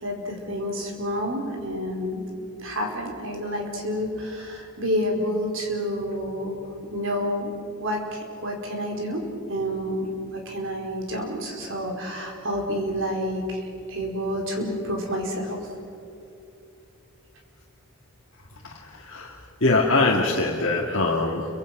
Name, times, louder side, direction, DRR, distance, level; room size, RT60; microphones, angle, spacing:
voice 1, 0.0-2.2 2.6-6.6 6.9-7.5 7.8-9.2 9.5-15.6, equal, 60° right, 1 dB, 4.6 m, -29 dB
voice 2, 19.6-21.5, left 2 dB, 55° left, -2 dB, 2.2 m, -22 dB
29.5 x 24.5 x 6.0 m, 2.7 s
head